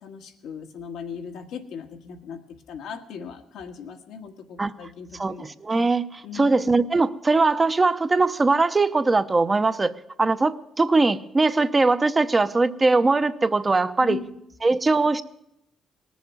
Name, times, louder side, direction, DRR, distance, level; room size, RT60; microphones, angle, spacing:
voice 1, 0.0-2.4 2.7-5.5 6.2-6.7 14.0-14.3, left 7 dB, 85° left, 4 dB, 1.5 m, -38 dB
voice 2, 5.2-9.9 10.2-14.2 14.6-15.2, right 3 dB, 25° right, 11 dB, 0.7 m, -21 dB
19.0 x 7.1 x 9.3 m, 0.82 s
cardioid pair, 90°, 0 cm